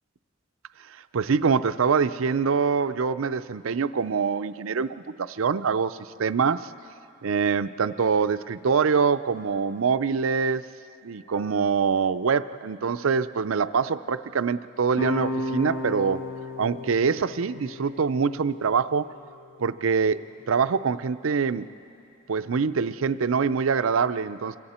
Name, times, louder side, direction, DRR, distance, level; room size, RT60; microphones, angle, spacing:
voice 1, 0.8-6.7 7.2-10.7 11.0-16.3 16.6-19.1 19.6-21.7 22.3-24.6, right 5 dB, 75° right, 13 dB, 0.5 m, -24 dB
sound 1, 14.9-20.1, left 1 dB, 80° left, 5.3 m, -35 dB
28.0 x 23.5 x 4.3 m, 2.6 s
head